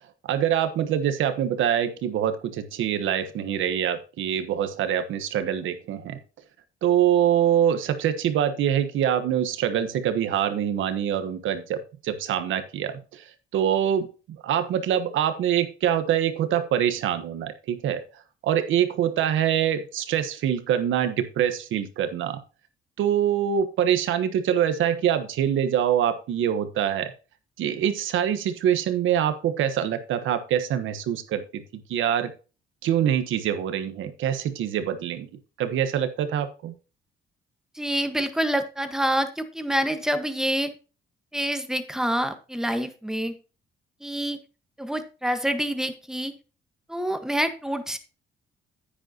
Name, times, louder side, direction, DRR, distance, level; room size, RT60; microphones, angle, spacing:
voice 1, 0.2-6.2 6.8-18.0 18.4-22.4 23.0-27.1 27.6-32.3 32.8-36.8, right 9 dB, 80° right, 10 dB, 1.2 m, -25 dB
voice 2, 37.7-40.7 41.3-43.4 44.0-44.4 44.8-46.3 46.9-48.0, equal, 5° right, 8 dB, 1.4 m, -27 dB
9.9 x 8.9 x 2.9 m, 0.33 s
cardioid pair, 90°, 20 cm